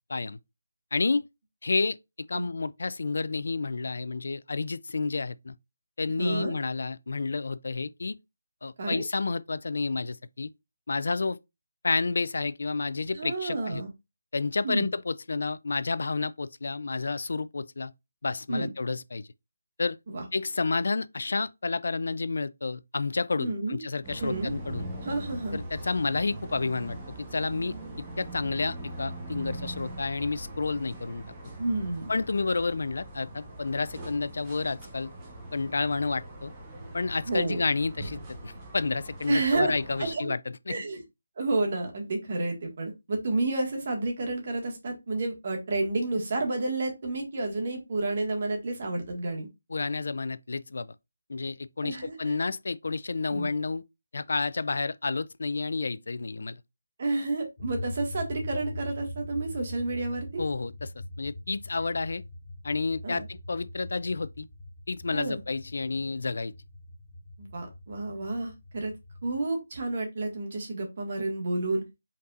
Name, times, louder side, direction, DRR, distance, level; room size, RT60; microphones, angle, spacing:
voice 1, 0.9-1.2 1.6-2.0 2.3-5.5 6.0-8.2 8.6-10.5 10.9-11.4 11.8-13.8 14.3-17.9 18.2-19.3 19.8-20.0 20.3-24.9 25.5-31.2 32.1-35.1 35.5-36.5 36.9-40.4 40.7-40.8 49.7-50.9 51.3-53.8 54.1-56.6 60.4-60.9 61.2-62.2 62.6-64.5 64.9-66.5, left 3 dB, 65° left, 0.3 m, -30 dB
voice 2, 6.2-6.5 8.8-9.0 13.1-13.9 14.6-14.9 18.5-18.7 20.1-20.2 23.4-23.8 24.2-24.5 25.0-25.6 31.6-32.1 37.3-37.6 39.3-39.7 40.0-40.3 40.7-41.0 41.4-49.5 51.8-52.3 53.3-53.5 57.0-60.4 63.0-63.2 65.1-65.4 67.4-68.9 69.2-71.8, right 2 dB, 40° right, 1.7 m, -30 dB
sound 1, 24.0-40.1, right 1 dB, 15° right, 1.0 m, -41 dB
sound 2, 57.6-69.4, left 1 dB, 25° left, 1.4 m, -42 dB
5.2 x 4.0 x 2.5 m
figure-of-eight pair, 170°, 0 cm